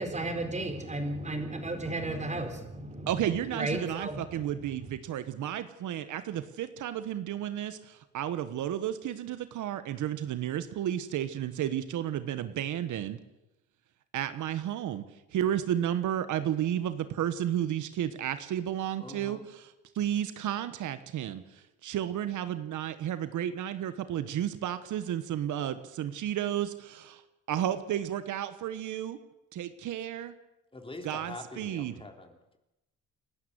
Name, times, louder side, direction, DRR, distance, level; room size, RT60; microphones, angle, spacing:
voice 1, 0.0-4.5, right 2 dB, 25° right, 5 dB, 4.5 m, -34 dB
voice 2, 3.1-13.2 14.1-15.0 15.3-19.4 19.9-26.7 27.5-29.2 29.5-30.3 31.0-31.9, right 11 dB, 75° right, 12 dB, 1.3 m, -32 dB
voice 3, 19.0-19.4 30.7-32.6, left 2 dB, 20° left, 4 dB, 3.5 m, -44 dB
29.0 x 12.0 x 8.0 m, 0.94 s
cardioid pair, 90°, 30 cm